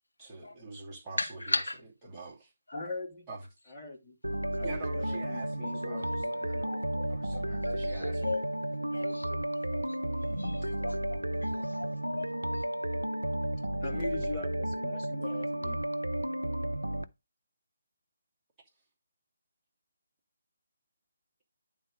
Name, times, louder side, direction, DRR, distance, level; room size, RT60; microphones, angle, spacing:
voice 1, 0.2-1.4 2.0-2.5 3.3-3.4 4.6-6.7 7.1-8.3 14.0-14.3, right 3 dB, 10° right, 2.8 m, -45 dB
voice 2, 1.2-1.8 2.7-2.9 6.6-8.4 8.9-9.4 9.7-12.6, left 2 dB, 75° left, 1.6 m, -38 dB
voice 3, 2.7-3.3 3.7-4.1 4.5-6.7 13.8-15.8, left 3 dB, 20° left, 2.7 m, -41 dB
sound 1, 4.2-17.0, right 1 dB, 85° right, 0.6 m, -33 dB
10.0 x 3.7 x 5.1 m
figure-of-eight pair, 145°, 0 cm